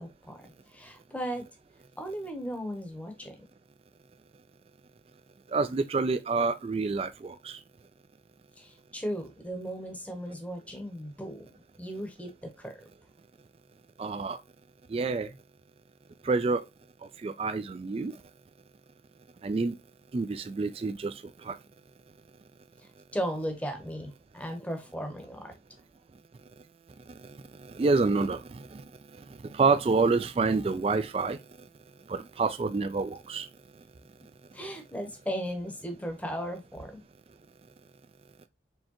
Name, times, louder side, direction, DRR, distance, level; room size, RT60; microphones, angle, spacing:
voice 1, 0.0-1.5 2.0-3.4 8.6-11.5 11.8-12.7 22.8-25.5 34.5-37.0, equal, 10° left, 0.8 m, -36 dB
voice 2, 5.5-7.6 14.0-14.4 14.9-15.3 16.2-16.6 17.2-18.2 19.4-19.8 20.1-21.1 21.4-21.6 27.6-28.8 29.5-31.4 32.1-33.5, right 4 dB, 35° right, 0.3 m, -28 dB
4.5 x 3.3 x 2.9 m
head